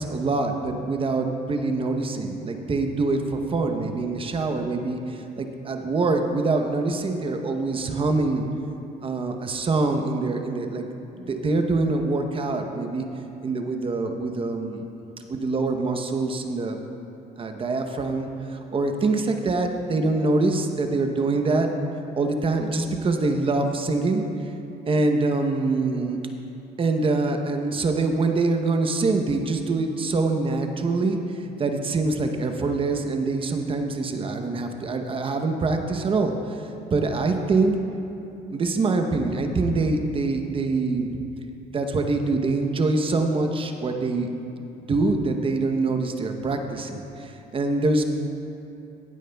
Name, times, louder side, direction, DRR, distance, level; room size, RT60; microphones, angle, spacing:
voice 1, 0.0-8.5 9.0-10.9 11.2-13.1 13.4-14.8 15.3-16.8 17.4-21.7 22.1-24.2 24.9-26.2 26.8-31.2 31.6-36.6 36.9-37.7 38.5-41.2 41.7-44.4 44.9-48.0, right 3 dB, 30° right, 5 dB, 0.8 m, -24 dB
16.0 x 9.0 x 2.3 m, 3.0 s
cardioid pair, 110°, 17 cm